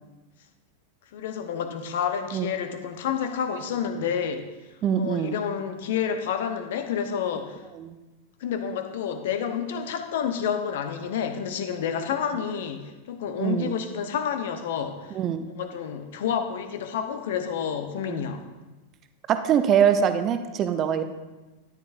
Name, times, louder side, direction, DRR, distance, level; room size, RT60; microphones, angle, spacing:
voice 1, 1.1-4.5 5.0-7.6 8.4-15.2 15.6-18.4, left 7 dB, 55° left, 8 dB, 0.9 m, -29 dB
voice 2, 4.8-5.4 7.8-8.0 13.4-13.8 15.1-15.5 18.1-18.2 19.3-21.0, right 8 dB, 30° right, 9 dB, 0.7 m, -23 dB
13.0 x 10.0 x 2.6 m, 1.2 s
figure-of-eight pair, 90°, 0 cm